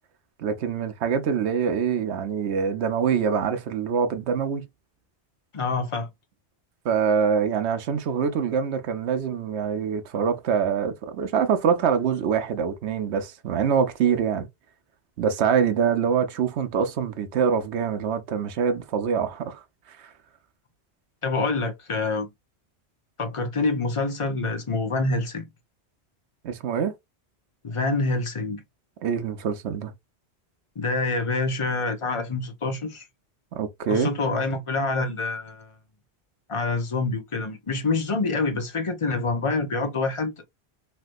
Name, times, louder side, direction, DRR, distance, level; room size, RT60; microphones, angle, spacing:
voice 1, 0.4-4.6 6.8-14.5 15.2-19.6 19.9-20.1 26.4-26.9 29.0-29.9 33.5-34.1, right 7 dB, 80° right, 1.0 m, -24 dB
voice 2, 5.5-6.1 21.2-22.3 23.2-25.5 27.6-28.6 30.8-33.1 33.9-35.7 36.5-40.3, left 3 dB, 30° left, 0.8 m, -26 dB
3.2 x 2.9 x 2.5 m
omnidirectional pair, 1.1 m